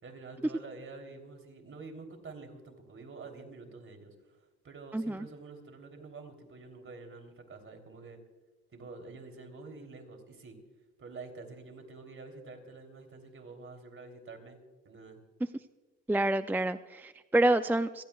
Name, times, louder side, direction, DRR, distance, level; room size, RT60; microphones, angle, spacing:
voice 1, 0.0-4.4 4.6-8.2 8.7-10.6 11.0-14.6 14.8-15.2, right 3 dB, 45° right, 4 dB, 3.3 m, -48 dB
voice 2, 4.9-5.3 16.1-18.0, right 1 dB, 5° right, 11 dB, 0.4 m, -28 dB
27.0 x 17.0 x 2.4 m, 1.2 s
cardioid pair, 90°, 30 cm